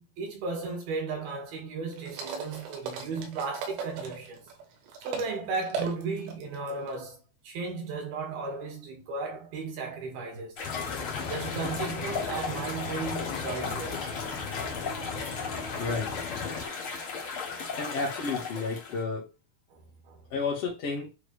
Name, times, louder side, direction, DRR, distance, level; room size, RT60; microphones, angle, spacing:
voice 1, 0.0-4.5 5.0-10.6 11.3-14.1 19.7-20.3, right 4 dB, 65° right, 3.5 m, -35 dB
sound 1, 1.9-5.3 5.6-7.0, right 5 dB, 85° right, 3.3 m, -37 dB
sound 2, 10.6-16.6, left 5 dB, 90° left, 1.6 m, -37 dB
sound 3, 10.6-19.0, left 5 dB, 50° left, 1.7 m, -36 dB
voice 2, 15.8-16.1 17.7-19.3 20.3-21.1, left 4 dB, 65° left, 1.5 m, -31 dB
9.0 x 3.3 x 3.2 m
omnidirectional pair, 4.8 m